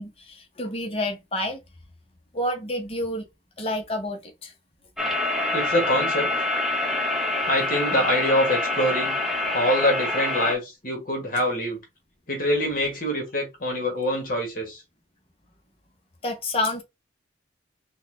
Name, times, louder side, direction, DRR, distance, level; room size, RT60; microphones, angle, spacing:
voice 1, 0.0-1.6 2.3-3.3 3.6-4.5 16.2-16.8, left 1 dB, 30° left, 0.8 m, -29 dB
sound 1, 5.0-10.5, left 2 dB, ahead, 0.7 m, -26 dB
voice 2, 5.5-6.3 7.5-9.2 9.5-11.8 12.3-14.8, equal, 45° left, 1.3 m, -25 dB
4.0 x 2.3 x 3.7 m
head